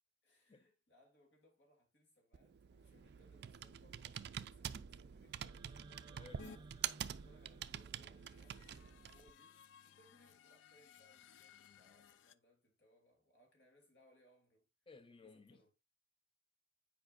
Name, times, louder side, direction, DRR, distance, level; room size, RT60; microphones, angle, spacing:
voice 1, 0.2-14.7 15.2-15.7, equal, 65° left, 2.8 m, -71 dB
Computer keyboard, 2.3-9.3, right 9 dB, 60° right, 0.4 m, -47 dB
sound 1, 5.3-9.3, right 2 dB, 25° right, 0.7 m, -62 dB
voice 2, 6.1-6.5 14.9-15.6, left 4 dB, 30° left, 0.7 m, -58 dB
sound 2, 6.4-6.6 8.0-12.3, left 6 dB, 80° left, 0.4 m, -60 dB
8.8 x 5.0 x 2.5 m
head